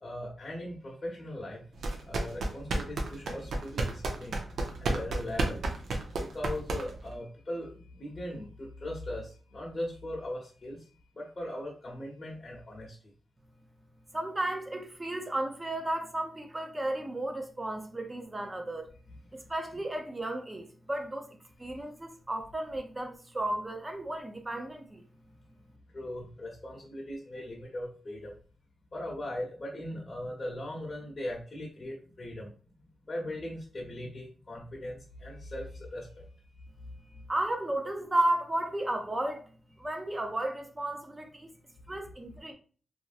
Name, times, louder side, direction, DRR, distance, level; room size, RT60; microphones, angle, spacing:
voice 1, 0.0-1.6 2.1-4.4 4.8-5.6 6.2-10.8 11.2-13.0 25.9-28.3 28.9-32.5 33.1-36.2, left 1 dB, 40° left, 0.8 m, -39 dB
sound 1, 1.8-7.1, right 2 dB, 80° right, 0.5 m, -32 dB
voice 2, 14.1-18.8 19.3-25.0 37.3-39.5 39.8-41.5 41.9-42.5, right 1 dB, 20° right, 0.6 m, -33 dB
3.1 x 2.5 x 2.4 m
cardioid pair, 75°, 0 cm